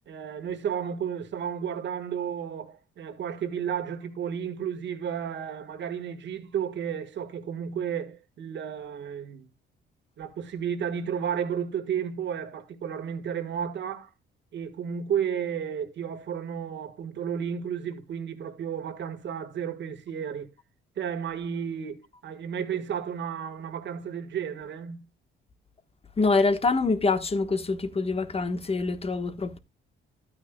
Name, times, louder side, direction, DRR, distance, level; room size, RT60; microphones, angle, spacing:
voice 1, 0.1-9.5 10.2-14.1 14.5-20.5 21.0-25.0, right 8 dB, 65° right, 1.6 m, -32 dB
voice 2, 26.2-29.6, left 3 dB, 30° left, 1.3 m, -25 dB
12.5 x 8.9 x 2.3 m
cardioid pair, 90°, 20 cm